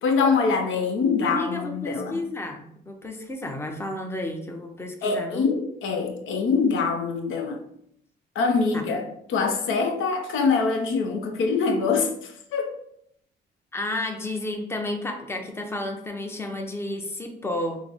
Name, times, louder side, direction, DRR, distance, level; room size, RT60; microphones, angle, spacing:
voice 1, 0.0-2.2 5.0-7.6 8.4-12.8, left 4 dB, 80° left, 5 dB, 0.6 m, -24 dB
voice 2, 1.2-5.4 8.7-8.8 13.7-17.8, left 1 dB, 10° left, 4 dB, 0.7 m, -32 dB
5.5 x 2.1 x 3.5 m, 0.71 s
cardioid pair, 90°, 20 cm